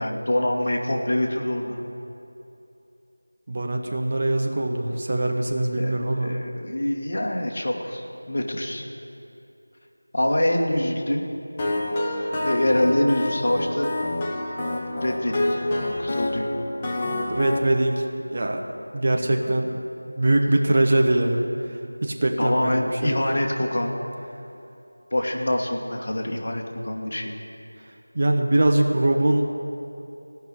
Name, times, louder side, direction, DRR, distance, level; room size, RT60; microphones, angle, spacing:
voice 1, 0.0-1.9 5.8-5.9 6.2-8.8 10.1-11.2 12.4-14.0 15.0-15.5 16.0-16.5 22.4-24.0 25.1-27.4, left 1 dB, 45° left, 1 dB, 1.5 m, -25 dB
voice 2, 3.5-6.4 17.3-18.6 18.9-19.7 20.1-21.5 22.0-23.2 28.1-29.4, right 1 dB, 40° right, 2 dB, 1.1 m, -22 dB
sound 1, 11.6-17.6, left 1 dB, 15° left, 0.9 m, -27 dB
17.0 x 6.0 x 8.6 m, 2.8 s
figure-of-eight pair, 170°, 0 cm